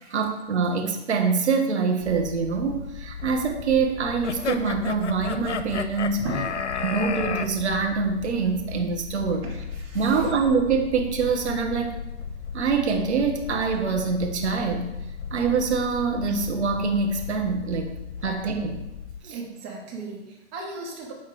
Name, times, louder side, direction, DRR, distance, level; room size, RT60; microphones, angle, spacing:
voice 1, 0.1-6.3 6.8-9.4 9.9-12.0 12.5-14.9 15.3-17.9 18.2-18.8 19.2-19.3, right 5 dB, 70° right, 3 dB, 1.6 m, -25 dB
sound 1, 2.0-19.2, left 6 dB, 60° left, 1.1 m, -37 dB
sound 2, 4.2-7.5, left 6 dB, 75° left, 0.8 m, -31 dB
voice 2, 6.2-6.8 9.4-10.3 19.3-21.1, right 2 dB, 35° right, -1 dB, 2.7 m, -36 dB
11.0 x 4.3 x 4.9 m, 0.92 s
figure-of-eight pair, 120°, 35 cm